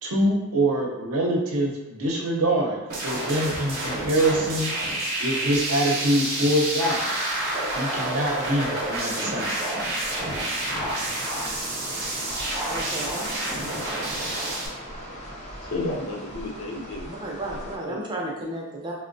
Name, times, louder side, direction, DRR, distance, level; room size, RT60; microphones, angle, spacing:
voice 1, 0.0-4.7 5.2-7.1 7.7-9.6, right 1 dB, 80° right, -1 dB, 0.7 m, -24 dB
sound 1, 2.9-14.7, right 1 dB, 45° right, 0.7 m, -29 dB
sound 2, 10.0-17.8, equal, 30° left, 0.5 m, -38 dB
voice 2, 12.7-13.3 16.7-18.9, right 1 dB, 20° right, -2 dB, 0.4 m, -33 dB
voice 3, 15.6-17.3 17.6-18.0, left 2 dB, 70° left, -2 dB, 0.6 m, -33 dB
4.3 x 2.1 x 2.5 m, 1.0 s
head